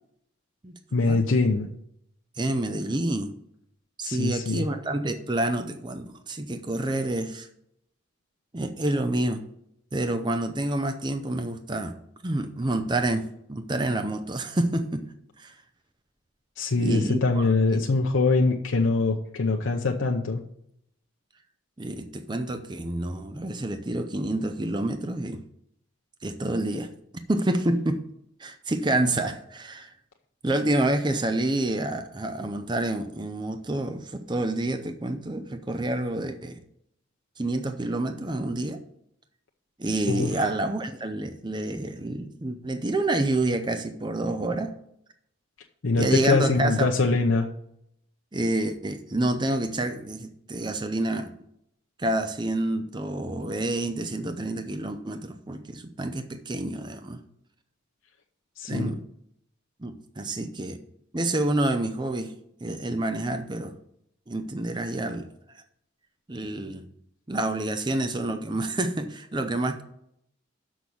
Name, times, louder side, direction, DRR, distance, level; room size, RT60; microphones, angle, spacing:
voice 1, 0.9-1.7 4.0-4.7 16.6-20.4 40.1-40.3 45.8-47.5 58.6-58.9, left 3 dB, 75° left, 1 dB, 0.7 m, -23 dB
voice 2, 2.4-3.3 4.0-7.5 8.5-9.4 9.9-15.1 15.4-15.6 16.8-17.5 21.8-25.4 26.2-26.9 27.3-28.0 28.4-29.9 30.4-36.6 37.4-38.8 39.8-44.7 46.0-46.9 48.3-51.3 52.0-57.2 58.7-59.0 59.8-60.8 61.1-62.3 62.6-63.7 64.3-65.3 66.3-66.9 67.3-69.8, right 1 dB, 20° right, 8 dB, 0.6 m, -28 dB
6.3 x 6.2 x 7.0 m, 0.74 s
head